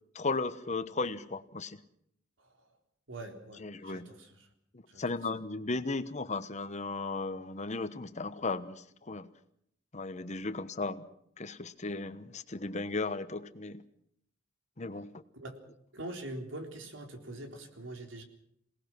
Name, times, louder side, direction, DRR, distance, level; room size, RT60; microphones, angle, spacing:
voice 1, 0.1-1.8 3.6-4.1 5.0-9.3 9.9-11.0 11.4-13.8 14.8-15.1, left 3 dB, 40° left, 12 dB, 1.1 m, -35 dB
voice 2, 3.1-4.5 4.9-5.0 15.3-15.6 15.9-18.2, right 1 dB, 90° right, 4 dB, 3.9 m, -43 dB
27.5 x 18.5 x 6.1 m, 0.71 s
head